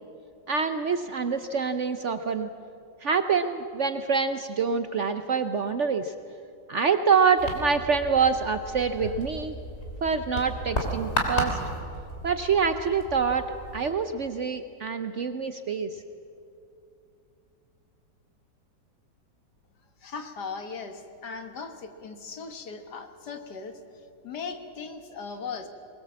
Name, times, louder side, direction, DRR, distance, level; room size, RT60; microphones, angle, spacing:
voice 1, 0.5-2.5 3.0-6.1 6.7-9.5 10.0-11.6 12.2-13.5 13.7-15.9, right 5 dB, 60° right, 9 dB, 0.8 m, -26 dB
sound 1, 7.4-13.9, equal, 35° left, 3.2 m, -34 dB
voice 2, 20.0-23.8 24.2-25.7, left 5 dB, 70° left, 7 dB, 2.0 m, -38 dB
22.5 x 21.0 x 7.5 m, 2.6 s
omnidirectional pair, 1.9 m